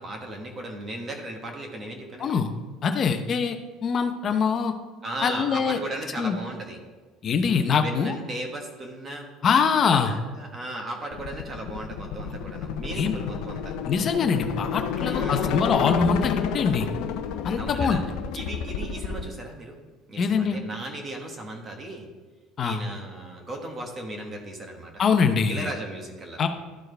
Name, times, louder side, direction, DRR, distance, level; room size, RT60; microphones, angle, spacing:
voice 1, 0.0-2.5 5.0-6.8 7.8-9.3 9.8-13.7 15.0-15.6 17.5-18.0 18.3-19.8 20.1-22.1 22.6-24.9 25.5-26.4, right 1 dB, 25° right, 2 dB, 1.4 m, -36 dB
voice 2, 2.8-3.6 3.8-4.7 5.2-5.8 6.2-6.4 7.2-8.1 9.4-10.1 13.0-13.1 13.9-16.9 17.4-18.0 20.2-20.6 22.6-22.8 25.0-25.7 26.4-26.5, left 6 dB, 35° left, 7 dB, 0.7 m, -23 dB
sound 1, 11.1-19.3, left 7 dB, 75° left, 0.5 m, -30 dB
12.5 x 4.4 x 3.4 m, 1.3 s
cardioid pair, 135°, 0 cm